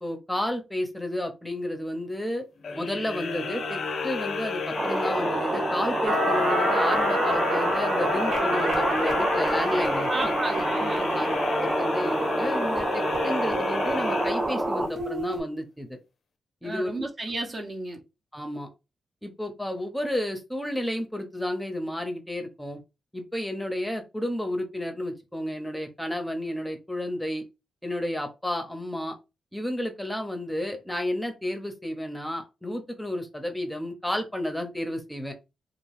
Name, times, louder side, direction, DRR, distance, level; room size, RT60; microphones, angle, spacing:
voice 1, 0.0-2.4 2.7-10.3 11.1-16.0 16.6-16.9 18.3-18.7 19.2-22.8 23.1-27.4 27.8-29.1 29.5-35.3, left 1 dB, 5° left, 0.7 m, -32 dB
sound 1, 2.6-14.9, left 4 dB, 65° left, 0.4 m, -32 dB
sound 2, 4.7-14.9, right 2 dB, 25° right, 0.4 m, -28 dB
sound 3, 6.0-15.4, equal, 65° right, 1.6 m, -30 dB
voice 2, 10.1-11.3 16.6-18.0, right 2 dB, 45° right, 0.8 m, -33 dB
2.4 x 2.2 x 3.2 m
supercardioid pair, 45°, 0 cm